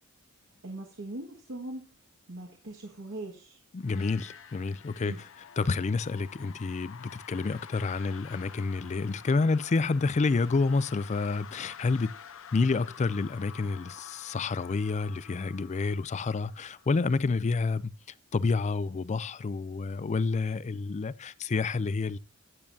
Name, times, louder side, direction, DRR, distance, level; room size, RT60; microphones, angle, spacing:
voice 1, 0.6-1.9 2.3-3.6 5.0-5.2, right 2 dB, 65° right, 1.8 m, -40 dB
voice 2, 3.7-5.1 5.6-12.1 12.5-17.9 18.3-22.2, left 4 dB, 35° left, 0.4 m, -29 dB
sound 1, 3.8-17.5, left 8 dB, 65° left, 0.8 m, -49 dB
12.0 x 9.2 x 2.7 m
head